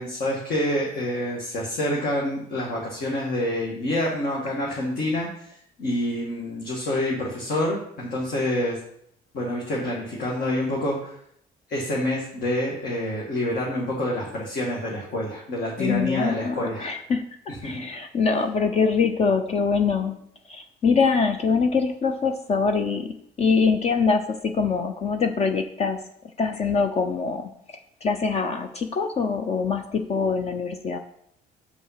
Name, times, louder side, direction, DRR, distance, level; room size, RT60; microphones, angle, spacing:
voice 1, 0.0-8.8 9.3-11.1 11.7-16.9 17.6-17.8, left 1 dB, 60° left, -2 dB, 1.9 m, -27 dB
voice 2, 15.8-20.2 20.5-23.1 23.4-26.0 26.4-27.5 28.0-31.0, left 5 dB, 40° left, 7 dB, 0.7 m, -24 dB
6.4 x 5.4 x 5.8 m, 0.71 s
cardioid pair, 110°, 17 cm